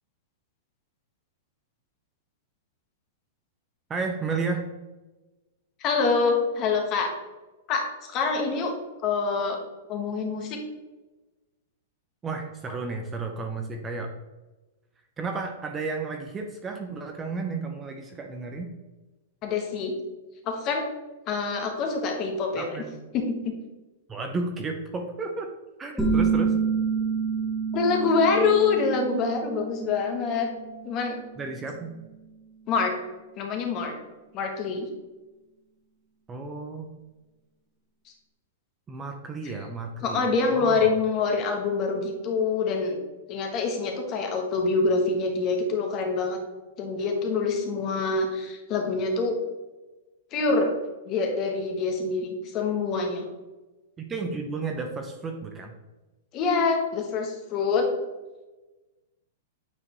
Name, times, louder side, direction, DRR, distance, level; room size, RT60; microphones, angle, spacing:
voice 1, 3.9-4.7 12.2-14.1 15.2-18.7 22.6-23.0 24.1-25.5 25.8-26.5 31.4-31.9 36.3-36.9 38.9-40.2 40.5-40.9 54.0-55.7, right 4 dB, 15° right, 3 dB, 0.7 m, -32 dB
voice 2, 5.8-7.1 7.7-8.7 9.0-9.6 9.9-10.6 19.4-19.9 20.4-20.9 21.3-22.8 23.1-23.2 27.7-30.5 30.8-31.2 32.7-32.9 33.4-33.9 34.3-34.9 40.0-43.0 43.3-46.4 46.8-49.4 50.3-50.7 51.0-53.2 56.3-57.9, left 4 dB, 35° left, 3 dB, 1.4 m, -25 dB
sound 1, 26.0-31.4, right 5 dB, ahead, 1.2 m, -28 dB
8.5 x 4.9 x 3.1 m, 1.1 s
hypercardioid pair, 150°, 0 cm